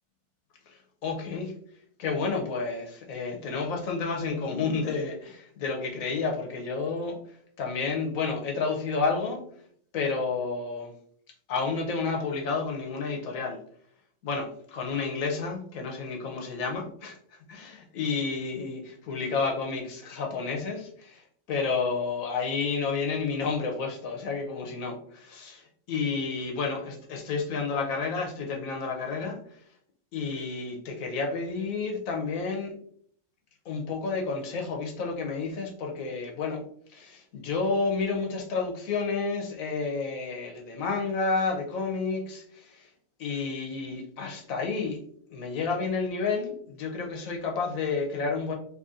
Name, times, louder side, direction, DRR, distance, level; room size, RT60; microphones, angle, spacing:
voice 1, 0.7-1.5 2.0-7.2 7.6-9.4 9.9-10.9 11.5-13.6 14.2-17.2 17.5-29.4 30.1-32.7 33.6-36.6 36.9-42.9 43.2-45.0 45.3-48.5, left 4 dB, 90° left, 2 dB, 1.2 m, -30 dB
4.0 x 3.0 x 2.5 m, 0.62 s
omnidirectional pair, 1.4 m